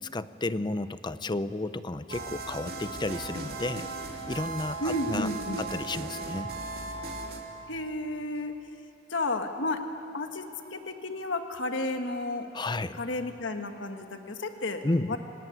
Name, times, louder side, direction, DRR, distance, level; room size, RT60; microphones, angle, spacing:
voice 1, 0.0-3.9 4.3-5.3 5.6-6.5 12.5-13.0 14.8-15.2, left 2 dB, 25° left, 14 dB, 0.6 m, -32 dB
sound 1, 2.1-7.4, right 3 dB, 50° right, 3.0 m, -37 dB
voice 2, 4.8-5.6 7.7-8.5 9.1-9.8 10.1-12.5 13.0-14.8 15.1-15.2, left 2 dB, 65° left, 6 dB, 1.4 m, -32 dB
28.0 x 18.0 x 9.8 m, 2.9 s
head